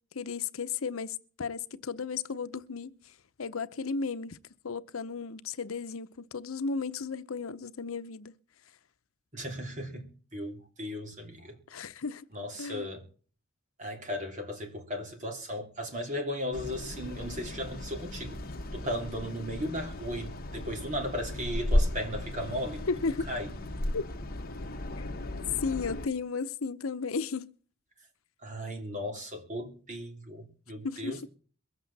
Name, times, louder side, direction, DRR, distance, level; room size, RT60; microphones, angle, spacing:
voice 1, 0.1-4.4 4.6-8.4 11.7-12.2 12.6-12.9 22.9-23.3 23.9-24.1 25.6-27.5 30.8-31.2, left 4 dB, 85° left, 0.8 m, -34 dB
voice 2, 9.3-11.6 12.3-13.0 13.8-18.4 18.7-22.8 23.3-23.5 28.4-31.3, equal, 35° right, 2.9 m, -36 dB
sound 1, 16.5-26.1, left 1 dB, 45° left, 1.3 m, -34 dB
23.0 x 8.1 x 4.1 m
head